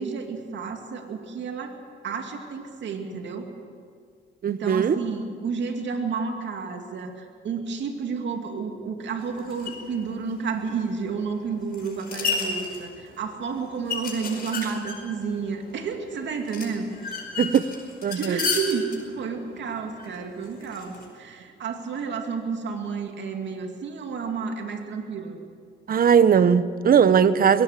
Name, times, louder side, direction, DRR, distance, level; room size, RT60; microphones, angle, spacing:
voice 1, 0.0-1.8 2.0-3.4 4.5-17.2 18.1-25.4, right 5 dB, 65° right, 4 dB, 2.6 m, -31 dB
voice 2, 4.4-5.0 17.4-17.7 18.0-18.4 25.9-27.6, right 7 dB, 45° right, 14 dB, 1.0 m, -19 dB
sound 1, 9.2-21.1, left 5 dB, 50° left, 5.2 m, -34 dB
22.5 x 18.0 x 7.5 m, 2.1 s
cardioid pair, 90°, 20 cm